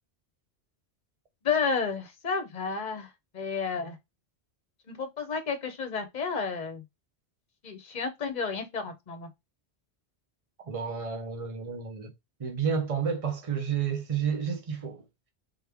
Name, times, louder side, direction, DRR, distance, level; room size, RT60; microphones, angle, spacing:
voice 1, 1.4-4.0 4.9-6.8 7.6-9.3, left 5 dB, 45° left, 0.9 m, -31 dB
voice 2, 10.7-12.1 12.4-15.0, right 6 dB, 35° right, 0.9 m, -30 dB
3.6 x 3.2 x 3.5 m
omnidirectional pair, 1.1 m